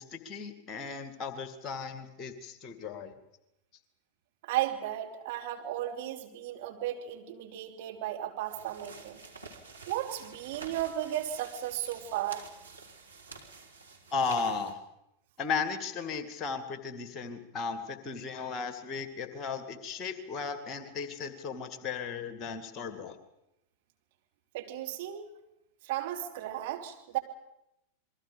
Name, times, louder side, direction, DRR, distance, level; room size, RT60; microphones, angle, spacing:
voice 1, 0.0-3.2 14.1-14.8 15.4-23.2, left 5 dB, 30° left, 10 dB, 2.2 m, -35 dB
voice 2, 4.4-9.2 9.9-12.5 24.5-25.3 25.8-27.2, right 12 dB, 50° right, 1 dB, 3.2 m, -35 dB
sound 1, 8.5-14.7, right 4 dB, 80° right, 3.2 m, -49 dB
28.5 x 22.5 x 5.2 m, 0.84 s
figure-of-eight pair, 90°, 0 cm